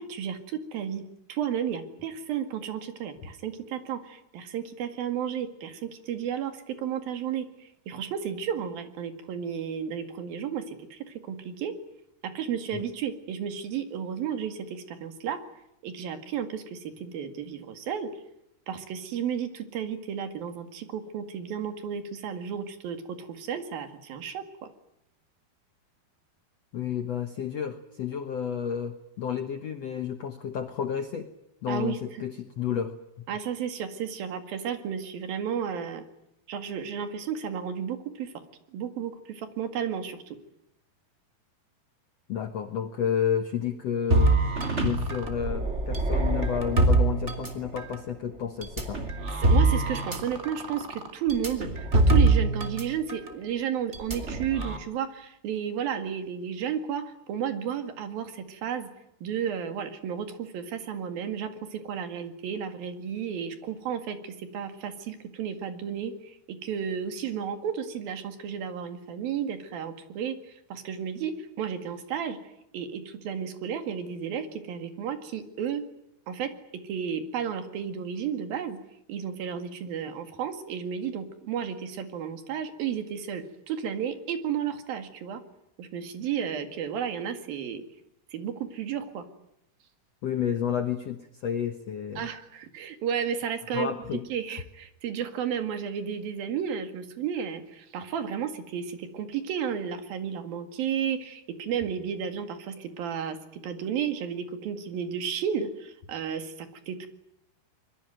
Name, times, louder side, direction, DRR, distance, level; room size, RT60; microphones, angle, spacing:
voice 1, 0.0-11.7 12.2-15.4 15.8-18.1 18.7-24.7 31.7-32.0 33.3-36.0 36.5-38.3 38.7-40.4 49.3-58.9 59.2-72.4 72.7-75.8 76.3-76.5 76.8-78.8 79.1-85.4 85.8-87.8 88.3-89.3 92.2-93.9 94.3-107.1, right 8 dB, 65° right, 8 dB, 3.7 m, -33 dB
voice 2, 26.7-31.3 31.6-33.2 42.3-44.4 44.8-49.0 90.2-92.3 93.7-94.2, left 8 dB, 65° left, 7 dB, 1.6 m, -31 dB
sound 1, 44.1-48.0 48.6-52.8 53.1-53.3 53.9-54.8, right 2 dB, 20° right, 2.1 m, -24 dB
25.5 x 22.5 x 9.1 m, 0.81 s
omnidirectional pair, 4.6 m